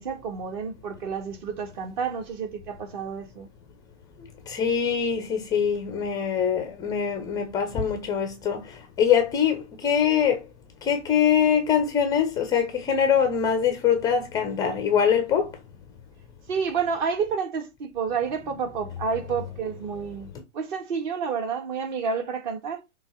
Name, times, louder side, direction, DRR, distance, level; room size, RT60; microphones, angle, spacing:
voice 1, 0.0-3.5 16.5-20.3 20.5-22.8, right 6 dB, 40° right, 1.8 m, -29 dB
voice 2, 4.5-10.4 10.8-15.5, left 8 dB, 10° left, 0.6 m, -23 dB
6.7 x 3.4 x 5.5 m
hypercardioid pair, 135°, 37 cm